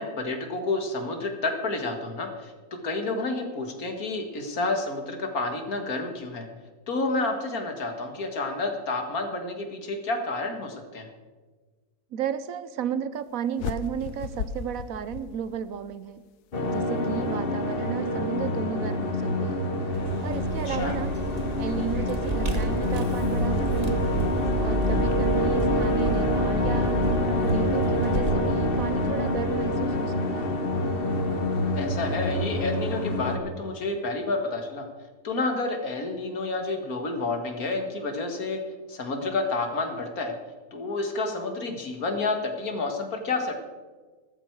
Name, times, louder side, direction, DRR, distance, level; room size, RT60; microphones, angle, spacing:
voice 1, 0.0-2.5 2.8-6.5 6.9-11.1 20.7-21.0 31.8-34.9 35.2-38.6 38.9-40.3 40.7-43.6, left 3 dB, 70° left, 5 dB, 2.2 m, -29 dB
voice 2, 12.1-16.2 16.7-19.7 20.2-21.1 21.6-24.1 24.6-27.0 27.4-30.6, right 8 dB, 70° right, 14 dB, 1.1 m, -33 dB
sound 1, 13.6-15.9, left 7 dB, 90° left, 1.2 m, -35 dB
sound 2, 16.5-33.4, left 1 dB, 40° left, 1.2 m, -26 dB
Vehicle, 19.9-30.2, right 1 dB, 30° right, 1.0 m, -32 dB
13.5 x 13.5 x 4.7 m, 1.4 s
omnidirectional pair, 1.6 m